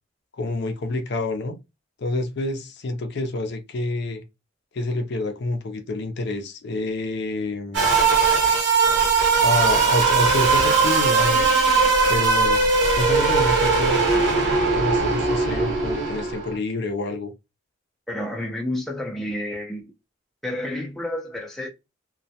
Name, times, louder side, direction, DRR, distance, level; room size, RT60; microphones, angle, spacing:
voice 1, 0.4-1.6 2.0-4.2 4.7-7.9 9.4-11.6 12.1-12.6 13.0-14.0 14.7-17.3, left 2 dB, 60° left, 0.5 m, -27 dB
sound 1, 7.7-16.5, right 4 dB, 65° right, 1.0 m, -19 dB
voice 2, 18.1-19.8 20.4-21.7, left 1 dB, ahead, 0.4 m, -30 dB
2.2 x 2.1 x 2.7 m
head